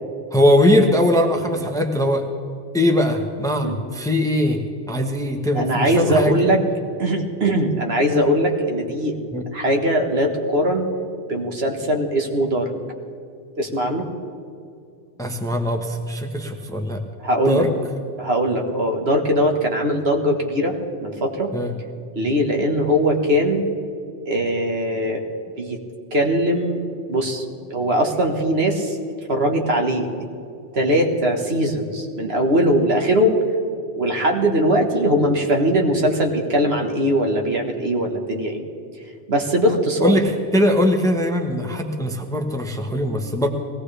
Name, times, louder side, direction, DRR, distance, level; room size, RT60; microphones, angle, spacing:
voice 1, 0.3-2.3 2.7-6.5 9.3-9.4 15.2-17.0 17.4-17.7 21.5-21.7 40.0-43.5, left 1 dB, 5° left, 4 dB, 1.0 m, -20 dB
voice 2, 5.5-6.6 7.0-9.2 9.5-10.9 11.3-12.7 13.6-14.1 17.2-17.6 18.2-21.5 22.2-23.6 24.3-25.2 25.6-25.8 26.1-26.8 27.1-27.4 27.7-29.0 29.3-30.1 30.7-33.4 34.0-38.6 39.3-40.1, equal, 60° right, 2 dB, 1.8 m, -20 dB
21.0 x 17.5 x 3.4 m, 2.5 s
omnidirectional pair, 1.2 m